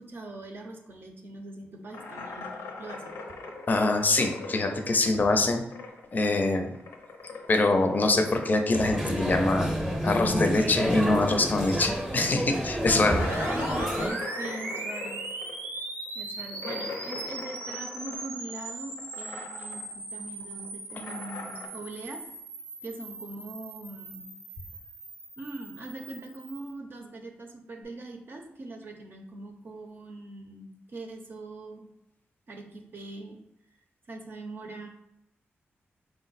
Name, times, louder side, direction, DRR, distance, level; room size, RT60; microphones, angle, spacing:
voice 1, 0.0-3.2 13.2-15.2 16.1-22.2 22.8-24.3 25.4-31.9 32.5-33.4 34.1-34.9, right 2 dB, 50° right, 2 dB, 0.6 m, -41 dB
sound 1, 1.9-6.2 6.4-11.5 11.8-11.9 12.3-12.4 13.1-18.7 19.0-19.9 20.2-21.7, left 3 dB, 90° left, 0.6 m, -41 dB
voice 2, 3.7-5.6 6.1-6.7 7.5-9.7 10.0-13.3, left 2 dB, 40° left, 5 dB, 0.5 m, -24 dB
sound 2, 8.7-14.1, equal, 10° right, 0.7 m, -29 dB
sound 3, 12.8-26.7, right 2 dB, 90° right, 0.8 m, -39 dB
4.4 x 2.1 x 4.0 m, 0.85 s
wide cardioid pair, 100°, 4 cm